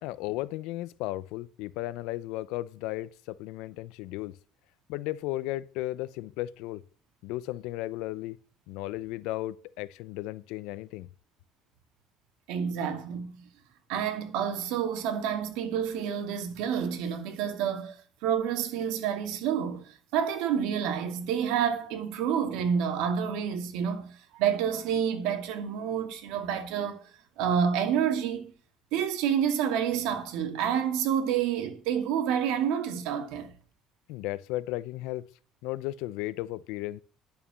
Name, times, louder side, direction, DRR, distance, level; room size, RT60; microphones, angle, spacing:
voice 1, 0.0-4.4 4.9-6.8 7.2-8.4 8.7-11.1 34.1-35.3 35.6-37.0, left 17 dB, 90° left, 0.6 m, -35 dB
voice 2, 12.5-13.4 13.9-18.0 18.2-27.1 27.4-28.5 28.9-33.5, right 8 dB, 85° right, 2.4 m, -29 dB
11.0 x 7.1 x 7.4 m
cardioid pair, 135°, 0 cm